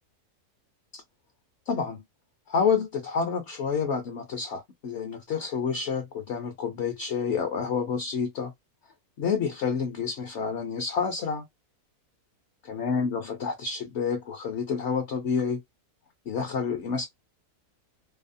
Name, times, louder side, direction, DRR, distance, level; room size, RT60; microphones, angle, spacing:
voice 1, 1.7-2.0 2.5-8.5 9.2-11.4 12.6-15.6 16.3-17.1, left 6 dB, 60° left, 0.8 m, -29 dB
2.8 x 2.0 x 2.5 m
omnidirectional pair, 1.6 m